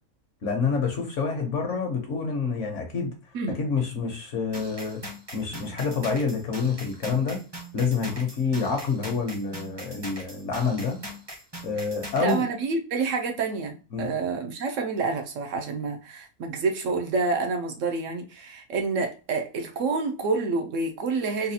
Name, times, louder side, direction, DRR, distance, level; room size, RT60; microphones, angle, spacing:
voice 1, 0.4-3.1 3.6-5.0 5.3-7.4 7.7-11.0 11.6-12.4 13.9-14.1, left 5 dB, 60° left, 1.1 m, -27 dB
sound 1, 4.5-12.4, equal, 25° right, 0.7 m, -41 dB
voice 2, 12.2-21.5, right 4 dB, 65° right, 0.9 m, -28 dB
4.0 x 2.3 x 2.7 m
omnidirectional pair, 1.5 m